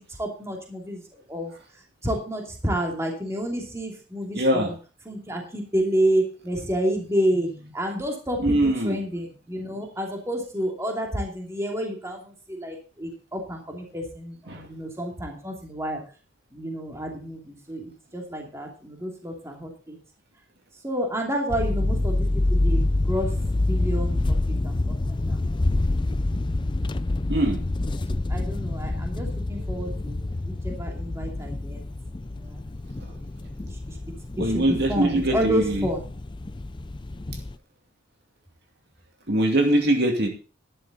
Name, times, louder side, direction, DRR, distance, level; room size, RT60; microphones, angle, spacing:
voice 1, 0.2-1.0 1.3-1.5 2.0-4.7 5.1-7.5 7.7-8.6 8.8-16.0 16.5-20.0 20.8-23.3 23.6-24.4 24.6-24.8 25.3-25.4 28.3-31.8 32.3-32.6 33.4-33.7 34.4-36.0, equal, 15° right, 1 dB, 2.7 m, -29 dB
voice 2, 4.3-4.7 8.4-9.0 14.5-14.7 27.3-27.6 29.6-30.1 34.4-35.9 39.3-40.3, right 1 dB, 55° right, 3 dB, 2.5 m, -23 dB
sound 1, 21.5-37.5, left 2 dB, 25° left, 0.5 m, -27 dB
12.0 x 11.0 x 4.1 m, 0.36 s
head